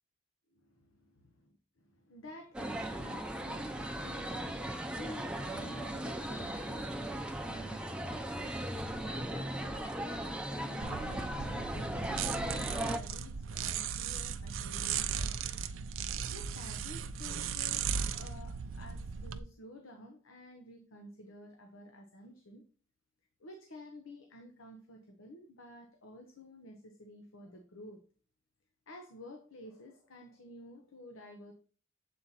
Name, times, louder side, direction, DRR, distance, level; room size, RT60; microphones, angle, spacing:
voice 1, 0.5-8.6 9.0-15.4 16.3-22.6 23.4-28.0 28.9-31.5, left 1 dB, 85° left, 4 dB, 0.9 m, -52 dB
sound 1, 2.5-13.0, right 1 dB, 5° right, 0.6 m, -37 dB
sound 2, 10.8-19.4, right 7 dB, 80° right, 0.5 m, -37 dB
7.6 x 4.2 x 4.0 m, 0.40 s
head